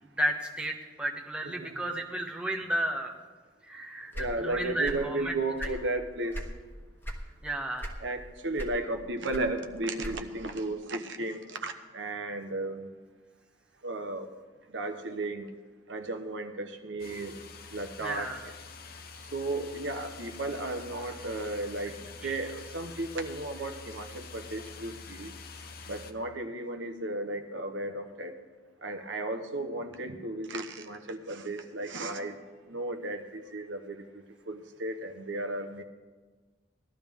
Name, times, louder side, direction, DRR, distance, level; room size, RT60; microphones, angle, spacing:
voice 1, 0.0-3.1 3.6-5.7 7.4-7.9 18.0-18.4 22.2-22.4, right 1 dB, 5° right, 0 dB, 1.1 m, -33 dB
sound 1, 4.1-5.1 5.4-6.6 7.0-7.3 7.8-8.2 8.6-10.5, equal, 10° left, 1.2 m, -38 dB
voice 2, 4.1-6.4 8.0-12.9 13.8-14.3 14.7-15.5 15.9-17.4 17.7-18.3 19.3-21.9 22.2-25.3 25.9-28.3 28.8-32.4 32.7-34.0 34.5-35.8, right 2 dB, 80° right, 7 dB, 1.1 m, -34 dB
sound 2, 17.0-26.1, left 4 dB, 50° left, 0.8 m, -46 dB
18.0 x 12.5 x 3.6 m, 1.4 s
head